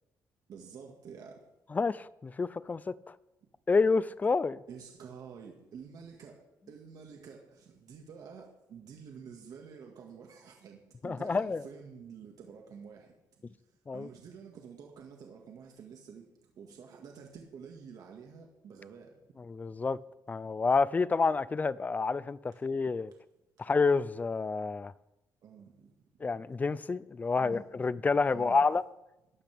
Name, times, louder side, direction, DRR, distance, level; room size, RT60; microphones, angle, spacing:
voice 1, 0.5-1.4 4.7-13.1 13.9-16.3 16.6-19.1 25.4-25.9 27.3-27.6 28.3-28.7, right 6 dB, 65° right, 1.9 m, -49 dB
voice 2, 1.7-3.1 3.7-4.6 11.0-11.6 13.9-14.1 19.5-20.0 20.3-23.1 23.6-24.9 26.2-28.8, left 4 dB, 25° left, 0.5 m, -29 dB
18.5 x 12.0 x 3.5 m
cardioid pair, 120°, 7 cm